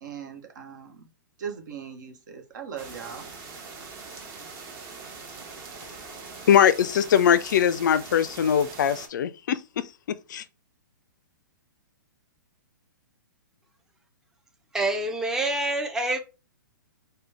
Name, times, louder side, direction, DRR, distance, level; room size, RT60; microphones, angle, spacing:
voice 1, 0.0-1.1 1.4-3.3, right 7 dB, 60° right, 1.1 m, -39 dB
sound 1, 2.8-9.1, right 4 dB, 30° right, 1.0 m, -42 dB
voice 2, 6.5-9.9 10.3-10.4, left 9 dB, 60° left, 0.4 m, -21 dB
voice 3, 14.7-16.2, right 2 dB, 5° right, 0.6 m, -26 dB
5.0 x 2.2 x 3.4 m
hypercardioid pair, 125°, 11 cm